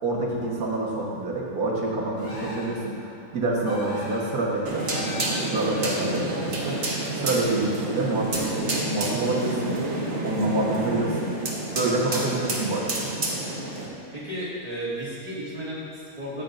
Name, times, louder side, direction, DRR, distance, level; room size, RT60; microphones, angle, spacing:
voice 1, 0.0-9.8 10.2-11.4 11.7-13.1, right 2 dB, 70° right, -3 dB, 1.8 m, -27 dB
sound 1, 2.2-2.9 3.6-4.4 4.8-5.7, left 1 dB, 60° left, 1.9 m, -39 dB
sound 2, 4.7-13.9, right 2 dB, 50° right, 1.5 m, -29 dB
voice 2, 14.1-16.4, equal, 25° right, -8 dB, 2.3 m, -33 dB
13.0 x 8.5 x 2.6 m, 2.4 s
omnidirectional pair, 1.6 m